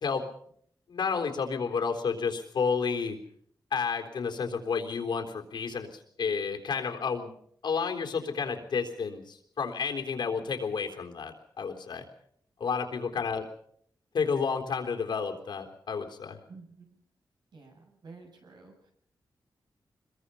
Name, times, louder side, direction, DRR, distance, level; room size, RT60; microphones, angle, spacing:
voice 1, 0.9-3.2 3.7-7.4 7.6-12.1 12.6-13.4 14.1-16.4, left 5 dB, 70° left, 4 dB, 3.9 m, -31 dB
voice 2, 16.5-16.9 17.5-18.9, right 4 dB, 70° right, 1 dB, 7.4 m, -51 dB
25.5 x 22.5 x 5.7 m, 0.64 s
wide cardioid pair, 155°, 8 cm